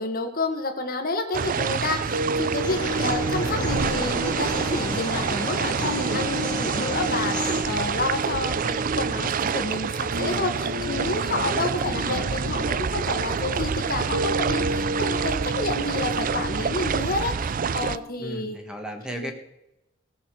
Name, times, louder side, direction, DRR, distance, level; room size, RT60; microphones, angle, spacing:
voice 1, 0.0-18.6 19.1-19.3, left 2 dB, 50° left, 5 dB, 1.8 m, -30 dB
sound 1, 1.3-18.0, right 6 dB, 45° right, 0.4 m, -27 dB
sound 2, 2.1-18.1, right 1 dB, 85° right, 2.0 m, -33 dB
sound 3, 2.6-7.6, left 2 dB, 20° left, 1.9 m, -33 dB
voice 2, 3.0-3.8 11.5-12.3 18.2-19.3, equal, 5° right, 4 dB, 1.7 m, -37 dB
17.0 x 7.0 x 6.5 m, 0.88 s
head